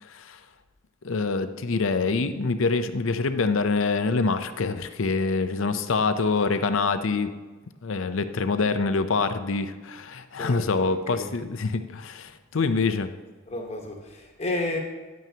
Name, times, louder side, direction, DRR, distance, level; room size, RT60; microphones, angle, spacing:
voice 1, 0.0-0.4 1.0-7.3 7.8-13.1, left 4 dB, 65° left, 10 dB, 0.6 m, -25 dB
voice 2, 10.4-11.3 13.5-14.8, left 2 dB, 30° left, 1 dB, 1.2 m, -32 dB
10.5 x 9.2 x 2.9 m, 1.3 s
head